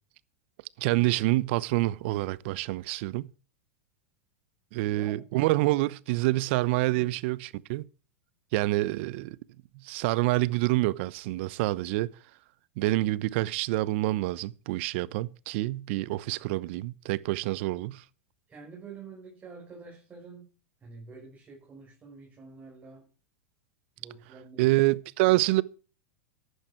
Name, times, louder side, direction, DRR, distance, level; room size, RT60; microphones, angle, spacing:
voice 1, 0.8-3.3 4.7-7.8 8.5-9.4 9.8-12.1 12.8-18.0 24.6-25.6, right 19 dB, 60° right, 0.9 m, -27 dB
voice 2, 4.8-5.4 6.9-7.1 18.5-20.5 20.8-23.1 24.0-24.7 25.3-25.4, right 4 dB, 20° right, 6.2 m, -47 dB
14.0 x 11.0 x 4.6 m
hypercardioid pair, 115°, 7 cm